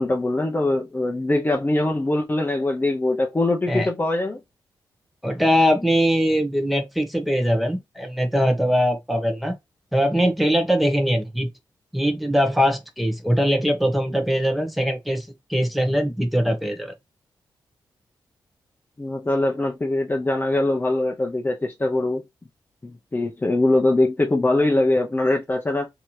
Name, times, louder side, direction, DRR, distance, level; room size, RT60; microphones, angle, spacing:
voice 1, 0.0-4.4 19.0-22.2 22.8-25.9, left 2 dB, 25° left, 0.7 m, -22 dB
voice 2, 5.2-9.6 9.9-11.5 11.9-16.9, equal, ahead, 1.2 m, -21 dB
3.3 x 2.9 x 3.2 m
cardioid pair, 60°, 8 cm